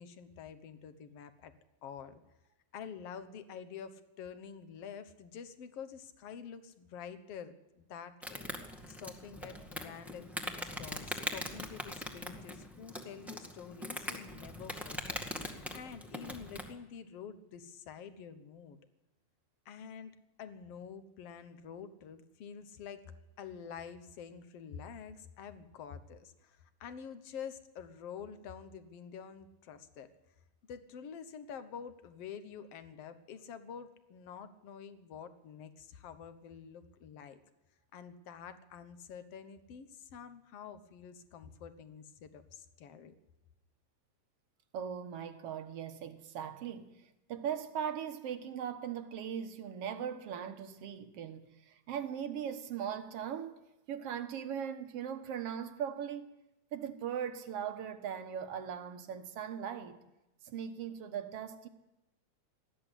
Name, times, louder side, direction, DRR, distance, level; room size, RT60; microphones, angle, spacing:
voice 1, 0.0-1.5 1.8-2.2 2.7-18.8 19.7-30.1 30.7-37.4 37.9-43.1, left 7 dB, 60° left, 2.1 m, -48 dB
Insect, 8.2-16.7, equal, ahead, 1.1 m, -42 dB
voice 2, 44.7-47.0 47.3-53.6 53.9-56.3 56.7-60.0 60.4-61.7, right 8 dB, 60° right, 2.1 m, -39 dB
19.5 x 13.5 x 10.0 m
omnidirectional pair, 3.4 m